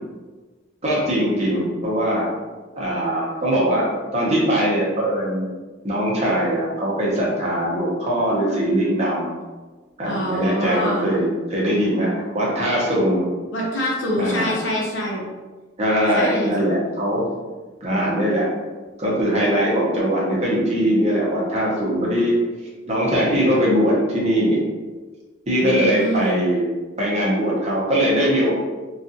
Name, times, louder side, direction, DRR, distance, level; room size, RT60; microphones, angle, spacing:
voice 1, 0.8-2.3 2.7-3.9 4.1-5.5 5.8-9.3 10.0-11.2 11.5-13.3 14.2-14.5 15.8-17.2 17.8-18.5 19.0-22.4 22.9-24.6 25.5-26.6 27.0-28.6, equal, 35° right, -5 dB, 0.8 m, -21 dB
voice 2, 10.0-11.1 13.5-15.2 16.1-16.7 25.6-26.4, equal, 70° left, -3 dB, 0.7 m, -25 dB
2.4 x 2.4 x 2.6 m, 1.3 s
head